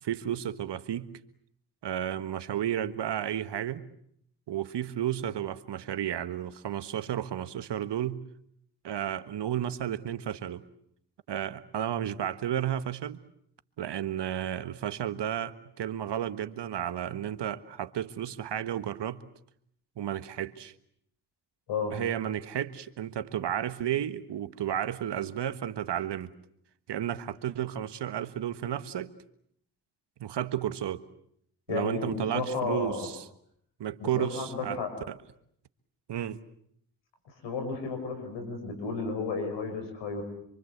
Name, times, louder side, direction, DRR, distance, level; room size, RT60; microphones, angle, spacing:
voice 1, 0.0-1.1 1.8-3.8 4.5-8.2 8.8-10.6 11.3-13.2 13.8-19.2 20.0-20.7 21.9-26.3 26.9-29.1 30.2-31.0 31.7-33.2 33.8-34.8 35.1-35.2 36.1-36.4, right 10 dB, 70° right, 12 dB, 1.6 m, -32 dB
voice 2, 31.7-33.1 34.0-34.9 37.4-40.2, left 4 dB, 85° left, 6 dB, 5.8 m, -33 dB
27.0 x 24.5 x 8.1 m, 0.71 s
supercardioid pair, 40°, 43 cm